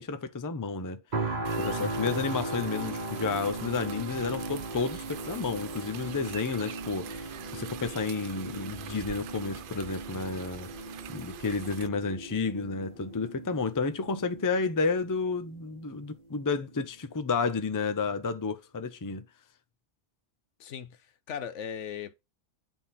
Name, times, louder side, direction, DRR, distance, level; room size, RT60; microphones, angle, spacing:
voice 1, 0.0-10.7 11.1-19.2, left 4 dB, 25° left, 0.5 m, -31 dB
sound 1, 1.1-16.1 16.6-16.8, right 2 dB, 40° right, 1.2 m, -38 dB
sound 2, 1.4-11.9, right 10 dB, 60° right, 0.6 m, -44 dB
Wind, 6.8-15.5, equal, 10° right, 1.5 m, -53 dB
voice 2, 20.6-22.1, left 8 dB, 80° left, 1.1 m, -38 dB
9.0 x 3.7 x 4.2 m
omnidirectional pair, 1.2 m